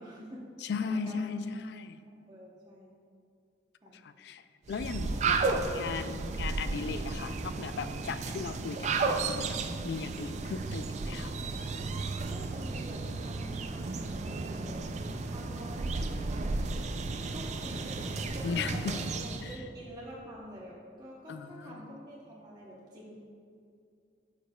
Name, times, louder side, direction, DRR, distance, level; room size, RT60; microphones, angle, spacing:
voice 1, 0.0-0.4 0.8-1.2 2.3-2.9 3.8-4.0 12.3-16.6 17.3-23.2, right 1 dB, 20° right, -6 dB, 0.9 m, -47 dB
voice 2, 0.6-2.0 3.9-4.4 4.7-5.5 5.7-9.6 9.8-11.3 18.4-19.0 19.4-19.5 21.3-21.8, left 5 dB, 65° left, 12 dB, 0.3 m, -37 dB
sound 1, 4.7-19.5, right 3 dB, 40° right, 0.3 m, -33 dB
9.2 x 6.5 x 2.3 m, 2.4 s
head